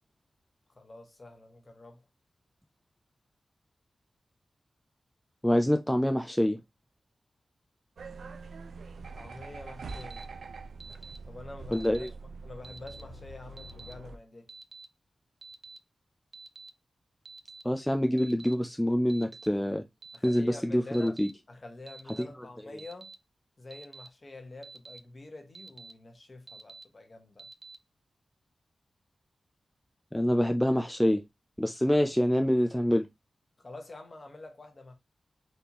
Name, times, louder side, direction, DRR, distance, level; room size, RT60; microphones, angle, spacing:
voice 1, 0.7-2.0 9.0-10.3 11.3-12.1 12.4-14.5 20.1-21.2 21.5-23.1 23.6-27.5 33.6-34.9, left 2 dB, 35° left, 1.2 m, -47 dB
voice 2, 5.4-6.6 11.7-12.1 17.6-19.8 20.2-21.3 22.2-22.3 30.1-31.2 31.6-33.1, equal, 5° left, 0.3 m, -26 dB
sound 1, 8.0-14.2, right 4 dB, 85° right, 0.5 m, -44 dB
Alarm, 9.9-10.2 10.8-11.2 11.7-12.1 12.6-13.0 13.6-13.9 14.5-14.8 15.4-15.8 16.3-16.7 17.3-17.6 18.2-18.5 19.1-19.5 20.0-20.4 20.9-21.3 21.9-22.2 22.8-23.1 23.7-24.1 24.6-25.0 25.5-25.9 26.5-26.8 27.4-27.8, right 3 dB, 35° right, 0.6 m, -48 dB
4.2 x 3.4 x 2.8 m
wide cardioid pair, 140°, 0 cm